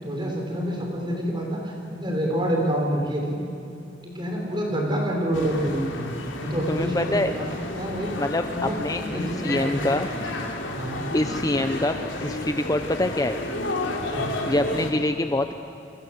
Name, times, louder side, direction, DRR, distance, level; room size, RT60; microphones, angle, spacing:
voice 1, 0.0-3.4 4.0-6.1 6.4-8.2 8.5-8.8 9.0-9.9 10.8-11.0 14.1-14.3, equal, 25° right, 0 dB, 5.9 m, -27 dB
sound 1, 5.3-14.9, left 2 dB, 80° left, 3.7 m, -32 dB
voice 2, 6.7-7.3 8.2-10.1 11.1-13.4 14.5-15.5, left 1 dB, 20° left, 8 dB, 0.8 m, -25 dB
28.5 x 25.5 x 8.1 m, 2.6 s
head